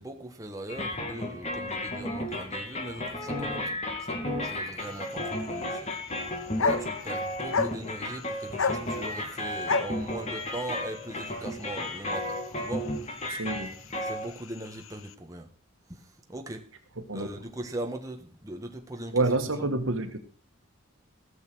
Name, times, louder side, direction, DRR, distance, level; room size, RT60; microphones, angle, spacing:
voice 1, 0.0-3.7 4.0-5.9 6.6-12.9 14.0-15.5 15.9-16.0 16.3-16.6 17.1-19.2, right 1 dB, 15° right, 1.3 m, -40 dB
sound 1, 0.7-14.3, left 1 dB, 35° left, 2.4 m, -34 dB
sound 2, 4.8-15.1, left 4 dB, 85° left, 0.8 m, -35 dB
voice 2, 13.3-13.7 17.0-17.4 19.1-20.2, right 2 dB, 80° right, 1.7 m, -28 dB
16.0 x 6.7 x 6.1 m
head